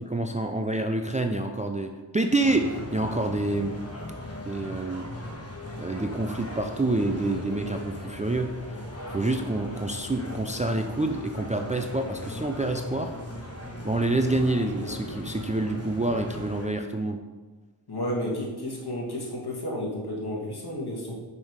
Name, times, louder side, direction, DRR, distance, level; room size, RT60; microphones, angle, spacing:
voice 1, 0.1-3.8 4.5-5.1 5.8-8.8 9.1-13.1 13.8-17.2, right 2 dB, 15° right, 4 dB, 0.5 m, -27 dB
sound 1, 2.4-16.7, left 1 dB, 30° left, 1.1 m, -38 dB
voice 2, 17.9-21.2, left 1 dB, 55° left, -2 dB, 1.8 m, -32 dB
5.5 x 5.3 x 4.7 m, 1.3 s
cardioid pair, 50°, 46 cm